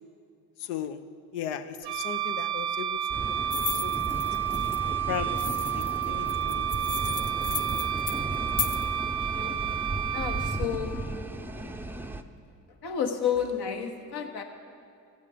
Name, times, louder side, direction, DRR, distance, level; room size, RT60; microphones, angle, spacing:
voice 1, 0.6-1.0 1.3-3.0 3.3-3.5 3.8-4.2 4.8-5.5 5.7-6.9, left 9 dB, 75° left, 10 dB, 0.6 m, -37 dB
Wind instrument woodwind instrument, 1.8-10.6, right 10 dB, 65° right, 0.6 m, -30 dB
sound 1, 3.1-12.2, right 2 dB, 5° right, 0.5 m, -35 dB
sound 2, 3.5-4.8 5.4-8.8, left 7 dB, 35° left, 0.7 m, -35 dB
voice 2, 10.1-11.0 11.5-11.8 12.8-14.4, left 7 dB, 60° left, 5 dB, 1.2 m, -31 dB
15.5 x 7.4 x 4.9 m, 2.4 s
figure-of-eight pair, 40°, 44 cm